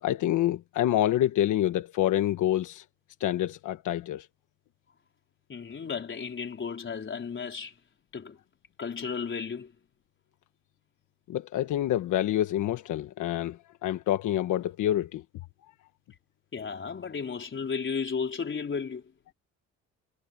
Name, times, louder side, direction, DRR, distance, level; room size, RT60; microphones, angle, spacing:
voice 1, 0.0-2.8 3.2-4.3 11.3-15.2, left 12 dB, 80° left, 1.4 m, -27 dB
voice 2, 5.5-7.7 8.1-8.4 8.8-9.7 16.5-19.0, left 6 dB, 40° left, 4.5 m, -34 dB
cardioid pair, 90°, 30 cm